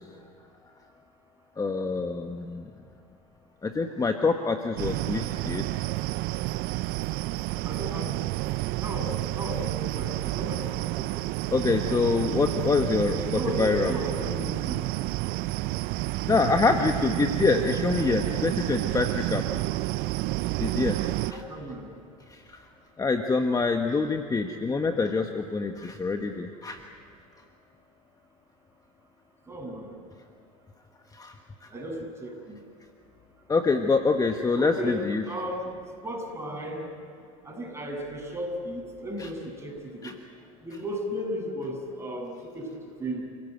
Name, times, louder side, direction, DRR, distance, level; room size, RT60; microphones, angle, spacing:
voice 1, 1.6-2.7 3.6-5.7 11.5-13.3 13.6-13.9 16.3-19.4 20.6-21.0 21.3-21.4 22.3-22.6 23.0-26.8 31.1-31.3 33.5-35.2 39.2-39.3 40.0-40.2, left 4 dB, 20° left, 5 dB, 1.3 m, -25 dB
sound 1, 4.8-21.3, right 19 dB, 60° right, 0.5 m, -30 dB
voice 2, 7.6-8.1 8.8-11.4 13.1-14.8 21.2-21.9 29.5-29.9 31.7-32.6 34.5-35.7 36.0-36.9 37.5-40.1 40.6-42.7 43.0-43.2, equal, 15° right, 0 dB, 7.5 m, -35 dB
29.0 x 16.5 x 8.0 m, 2.4 s
hypercardioid pair, 90°, 18 cm